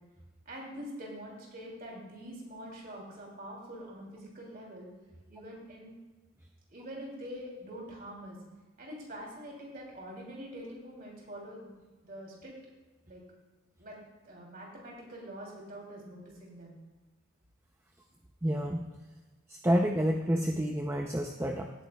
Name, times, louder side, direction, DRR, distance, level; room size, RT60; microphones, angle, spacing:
voice 1, 0.4-4.9 5.3-5.9 6.7-8.4 8.8-11.7 12.0-12.5 13.1-13.2 13.8-14.0 14.2-16.8, equal, 45° right, -2 dB, 2.9 m, -45 dB
voice 2, 18.4-18.9 19.5-21.7, equal, 10° right, 3 dB, 0.5 m, -29 dB
17.5 x 9.2 x 2.3 m, 1.2 s
head